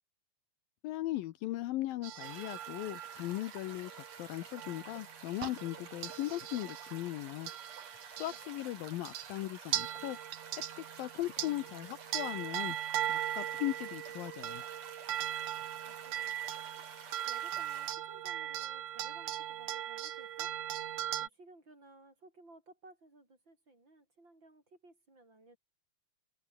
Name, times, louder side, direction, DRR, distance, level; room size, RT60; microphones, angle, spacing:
voice 1, 0.8-7.5 8.2-10.2 11.0-12.8 13.1-14.6, left 15 dB, 75° left, 2.5 m, -38 dB
sound 1, 2.0-8.7 9.1-9.3 9.7-21.3, right 12 dB, 65° right, 2.7 m, -39 dB
sound 2, 2.2-17.9, right 6 dB, 45° right, 4.2 m, -51 dB
voice 2, 8.2-8.7 15.8-16.4 17.2-20.5 21.2-25.6, right 2 dB, 30° right, 7.7 m, -58 dB
omnidirectional pair, 4.4 m